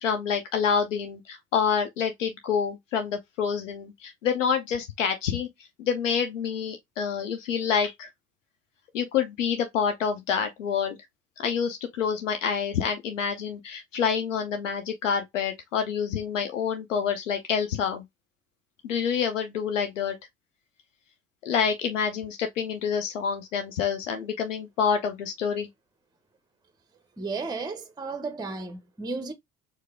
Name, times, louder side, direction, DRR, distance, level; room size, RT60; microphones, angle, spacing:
voice 1, 0.0-5.5 5.8-8.1 8.9-11.0 11.4-18.0 18.8-20.2 21.4-25.7, left 7 dB, 80° left, 0.7 m, -27 dB
voice 2, 27.2-29.3, right 3 dB, 10° right, 0.7 m, -33 dB
4.6 x 2.1 x 3.4 m
figure-of-eight pair, 55°, 37 cm